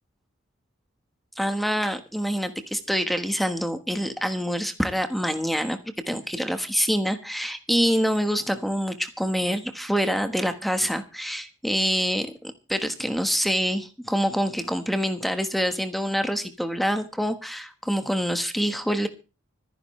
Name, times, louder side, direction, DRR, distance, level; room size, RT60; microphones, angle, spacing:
voice 1, 1.4-5.8 6.1-19.1, equal, ahead, 8 dB, 1.3 m, -26 dB
25.5 x 10.5 x 3.2 m, 0.33 s
head